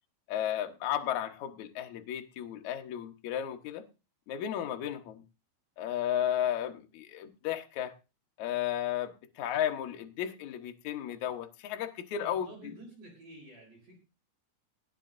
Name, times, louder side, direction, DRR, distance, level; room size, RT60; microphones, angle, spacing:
voice 1, 0.3-3.8 4.3-5.2 5.8-7.9 8.4-12.5, left 10 dB, 75° left, 1.7 m, -34 dB
voice 2, 12.2-14.0, right 2 dB, 50° right, 5.4 m, -50 dB
19.5 x 13.0 x 2.6 m
omnidirectional pair, 5.1 m